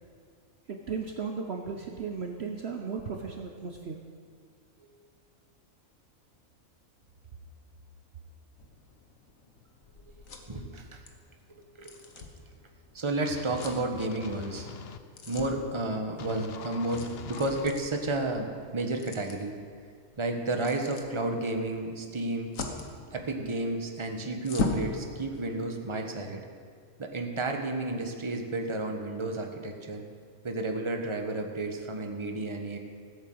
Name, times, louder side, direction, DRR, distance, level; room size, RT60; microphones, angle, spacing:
voice 1, 0.7-4.0, right 5 dB, 55° right, 3 dB, 1.1 m, -35 dB
sound 1, 8.6-24.9, left 3 dB, 75° left, 1.8 m, -41 dB
voice 2, 10.5-11.0 11.5-11.9 12.9-14.7 15.3-19.6 20.2-22.5 23.1-26.4 27.0-30.0 30.4-32.8, right 2 dB, 20° right, 3 dB, 1.3 m, -32 dB
sound 2, 13.2-15.0 16.2-17.7, left 7 dB, 55° left, 0.9 m, -43 dB
16.0 x 8.4 x 7.8 m, 2.2 s
omnidirectional pair, 1.4 m